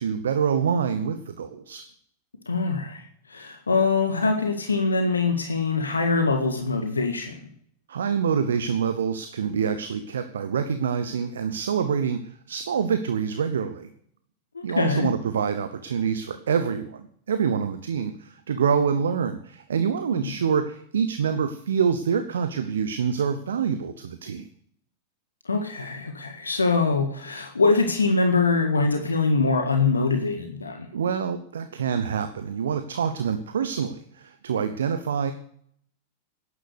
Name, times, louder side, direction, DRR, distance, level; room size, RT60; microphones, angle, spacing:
voice 1, 0.0-1.8 7.9-13.9 14.6-24.5 30.9-35.3, right 7 dB, 65° right, 10 dB, 1.0 m, -26 dB
voice 2, 2.4-7.4 14.5-15.1 20.2-20.3 25.4-30.9, left 3 dB, 75° left, 4 dB, 1.7 m, -23 dB
12.0 x 10.0 x 6.7 m, 0.63 s
figure-of-eight pair, 90°, 0 cm